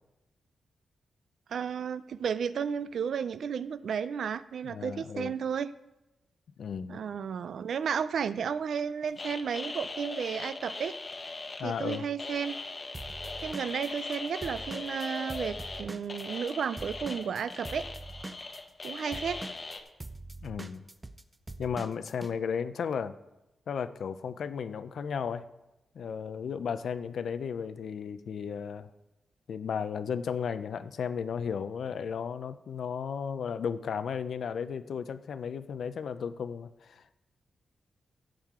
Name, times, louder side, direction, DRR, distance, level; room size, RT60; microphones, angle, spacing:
voice 1, 1.5-5.7 6.9-10.9 11.6-12.6 13.4-17.8 18.8-19.4, right 7 dB, 70° right, 14 dB, 0.4 m, -33 dB
voice 2, 4.6-5.3 6.6-7.0 11.6-12.0 20.4-20.8 21.6-23.1 23.7-25.5 25.9-28.9 29.5-37.1, left 7 dB, 70° left, 12 dB, 0.5 m, -34 dB
sound 1, 9.2-19.8, left 3 dB, 30° left, 0.9 m, -40 dB
Drum kit / Drum, 12.9-16.5 16.8-22.3, right 2 dB, 15° right, 0.5 m, -43 dB
14.5 x 7.4 x 3.7 m, 0.96 s
wide cardioid pair, 145°, 0 cm